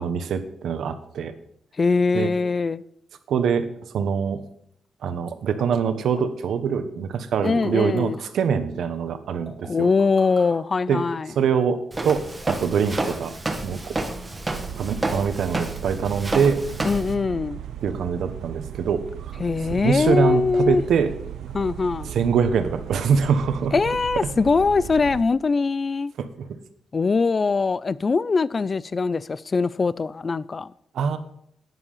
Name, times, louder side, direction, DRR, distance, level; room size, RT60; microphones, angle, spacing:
voice 1, 0.0-1.3 2.1-2.3 3.3-3.7 3.9-4.4 5.0-9.9 10.9-11.0 11.3-13.3 13.6-14.0 14.8-16.6 17.8-19.4 19.7-21.1 22.1-23.7 26.2-26.5 30.9-31.2, right 6 dB, 65° right, 1.2 m, -24 dB
voice 2, 1.8-2.8 7.4-8.2 9.7-11.3 16.8-17.6 19.4-20.8 21.5-22.1 23.7-26.1 26.9-30.7, left 4 dB, 25° left, 0.3 m, -22 dB
sound 1, 5.6-5.7 6.2-6.3 7.1-8.2 9.4-10.5 11.6-12.0 12.4-12.7 12.9-13.3 13.5-13.6, equal, 5° left, 3.3 m, -44 dB
Walk footsteps, 11.9-17.1, right 2 dB, 15° right, 1.2 m, -30 dB
sound 2, 14.5-25.2, right 10 dB, 85° right, 0.6 m, -36 dB
11.5 x 9.7 x 5.6 m
wide cardioid pair, 180°, 0 cm